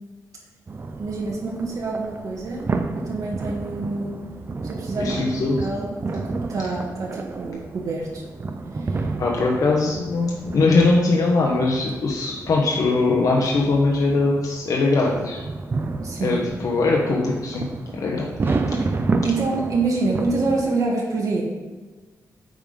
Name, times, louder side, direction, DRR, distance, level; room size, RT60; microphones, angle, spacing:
sound 1, 0.7-20.6, right 3 dB, 35° right, 0.5 m, -31 dB
voice 1, 1.0-2.7 2.9-4.1 4.6-5.2 5.6-8.2 8.8-9.0 16.0-16.4 18.8-18.9 19.2-21.4, right 3 dB, 65° right, -2 dB, 1.5 m, -26 dB
voice 2, 5.0-5.7 9.2-15.4 16.2-17.7 17.9-18.6, left 3 dB, 65° left, -1 dB, 1.0 m, -21 dB
9.0 x 3.7 x 5.1 m, 1.3 s
wide cardioid pair, 115°, 6 cm